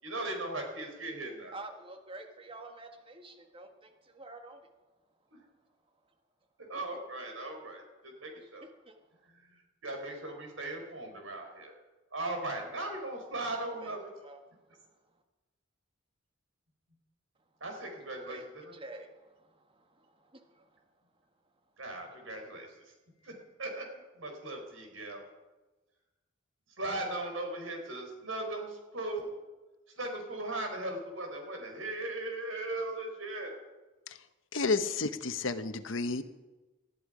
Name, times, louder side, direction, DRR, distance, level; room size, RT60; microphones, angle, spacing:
voice 1, 0.0-1.5 6.7-8.7 9.3-9.5 9.8-11.7 12.1-14.0 17.6-18.4 21.8-22.7 23.2-23.3 23.6-23.9 24.1-25.2 26.8-29.3 30.0-33.5, right 2 dB, 80° right, 3 dB, 4.5 m, -38 dB
voice 2, 1.5-4.7 6.7-6.8 8.3-9.0 13.8-13.9 14.2-15.2 18.3-18.5 18.7-20.8, right 2 dB, 25° right, 5 dB, 1.6 m, -49 dB
voice 3, 34.5-36.2, left 3 dB, 75° left, 10 dB, 1.1 m, -31 dB
19.5 x 13.5 x 5.0 m, 1.1 s
head